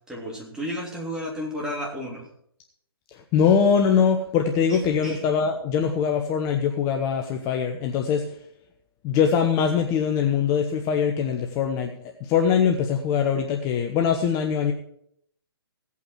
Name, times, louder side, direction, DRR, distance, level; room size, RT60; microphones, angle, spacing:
voice 1, 0.1-2.3 4.7-5.3, equal, 5° right, -3 dB, 3.2 m, -33 dB
voice 2, 3.3-8.2 9.0-11.9 12.2-14.7, left 7 dB, 25° left, 4 dB, 1.0 m, -22 dB
16.5 x 8.4 x 4.6 m, 0.70 s
figure-of-eight pair, 135°, 13 cm